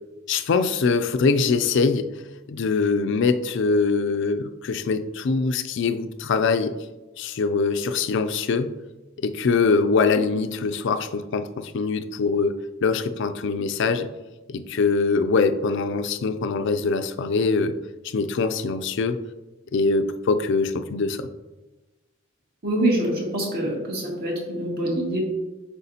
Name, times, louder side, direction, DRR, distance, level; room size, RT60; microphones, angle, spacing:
voice 1, 0.3-2.1 2.5-6.8 7.2-8.7 9.2-12.6 12.8-14.1 14.5-17.7 18.0-19.2 19.7-21.3, left 4 dB, 60° left, 9 dB, 0.4 m, -23 dB
voice 2, 22.6-25.2, right 1 dB, 50° right, -2 dB, 2.0 m, -25 dB
8.0 x 5.6 x 2.8 m, 1.1 s
head